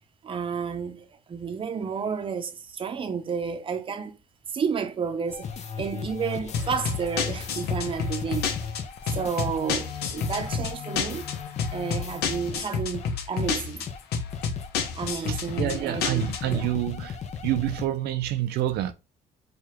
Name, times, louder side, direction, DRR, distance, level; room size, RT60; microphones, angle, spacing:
voice 1, 0.2-4.1 4.5-8.5 9.1-11.3 11.7-13.9 14.9-16.7, right 6 dB, 30° right, 0.6 m, -31 dB
sound 1, 5.3-12.6 12.9-13.1 13.4-13.5 13.9-14.0 14.3-17.9, left 7 dB, 40° left, 0.5 m, -37 dB
sound 2, 6.5-16.6, left 5 dB, 70° left, 0.8 m, -30 dB
voice 2, 15.3-17.2 17.4-18.9, right 13 dB, 75° right, 0.4 m, -28 dB
4.7 x 2.4 x 3.0 m
cardioid pair, 110°, 17 cm